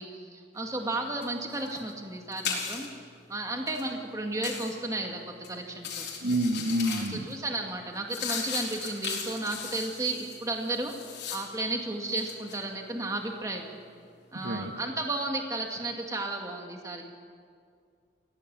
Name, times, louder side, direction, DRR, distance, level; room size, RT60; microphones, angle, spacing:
voice 1, 0.0-2.9 3.3-6.1 6.8-10.9 11.3-13.7 14.3-17.0, right 2 dB, 20° right, 2 dB, 2.0 m, -33 dB
sound 1, 0.6-1.0 1.2-3.0 3.6-3.9 4.4-4.8 5.3-5.5 5.7-7.3 7.7-11.7 12.0-12.6, left 6 dB, 70° left, 4.3 m, -37 dB
voice 2, 6.2-7.3 14.3-14.7, right 1 dB, 80° right, 6 dB, 1.5 m, -28 dB
21.5 x 17.0 x 7.5 m, 2.2 s
head